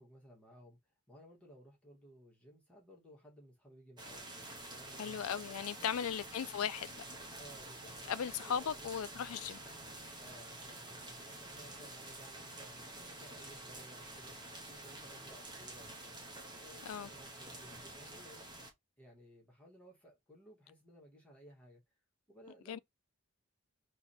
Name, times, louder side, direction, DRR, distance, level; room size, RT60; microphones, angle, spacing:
voice 1, 0.0-5.2 5.8-6.2 7.4-9.0 10.2-18.5 19.0-21.8 22.3-22.8, equal, 5° left, 1.8 m, -59 dB
sound 1, 4.0-18.7, right 2 dB, 20° right, 1.2 m, -49 dB
voice 2, 5.0-6.9 8.1-9.6 16.9-17.1 22.7-22.8, left 8 dB, 70° left, 0.3 m, -37 dB
3.9 x 3.2 x 4.2 m
head